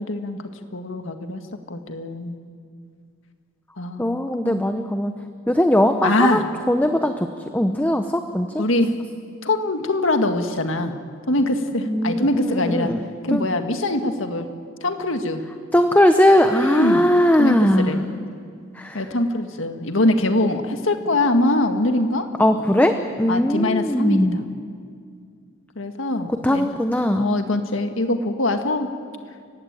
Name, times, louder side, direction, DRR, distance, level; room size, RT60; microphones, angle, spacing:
voice 1, 0.0-1.4 1.7-2.4 3.8-4.2 4.4-4.7 6.0-6.4 8.6-8.9 9.4-10.9 11.3-12.9 13.2-14.5 14.8-15.4 16.5-17.0 17.4-18.0 18.9-22.3 23.3-24.4 25.8-26.7 27.2-28.9, left 1 dB, 75° left, 6 dB, 1.9 m, -23 dB
voice 2, 4.0-5.1 5.5-7.3 7.5-8.6 11.8-13.0 13.3-13.5 15.7-18.1 18.7-19.0 22.4-24.4 26.4-27.3, left 1 dB, 10° left, 7 dB, 0.8 m, -19 dB
29.0 x 16.0 x 9.1 m, 2.2 s
head